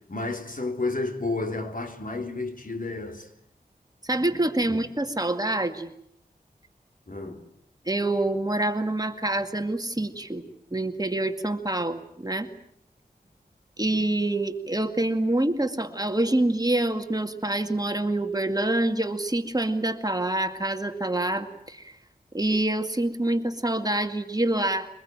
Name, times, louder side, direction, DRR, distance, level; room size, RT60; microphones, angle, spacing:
voice 1, 0.1-3.3 4.7-4.8 7.1-7.5, left 3 dB, 60° left, 3.6 m, -31 dB
voice 2, 4.1-5.9 7.9-10.4 10.7-12.5 13.8-22.0 22.3-24.9, right 1 dB, 25° right, 2.1 m, -26 dB
24.0 x 20.5 x 9.0 m
wide cardioid pair, 60°, 16 cm